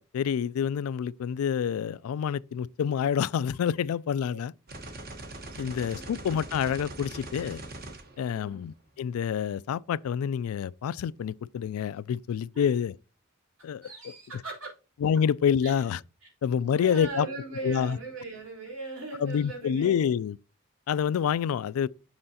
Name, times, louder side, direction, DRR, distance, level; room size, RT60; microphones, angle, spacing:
voice 1, 0.0-4.5 5.6-7.6 8.2-13.0 13.6-13.9 15.0-16.0 16.4-17.3 17.6-18.0 19.2-20.4 20.9-21.9, left 8 dB, 80° left, 0.3 m, -27 dB
sound 1, 4.7-8.9, right 2 dB, 45° right, 1.1 m, -42 dB
voice 2, 5.5-6.2 8.2-8.7 12.5-12.8 13.8-14.7 15.6-15.8 16.2-16.3 16.7-19.9, right 3 dB, 75° right, 3.7 m, -40 dB
7.6 x 6.6 x 2.8 m
head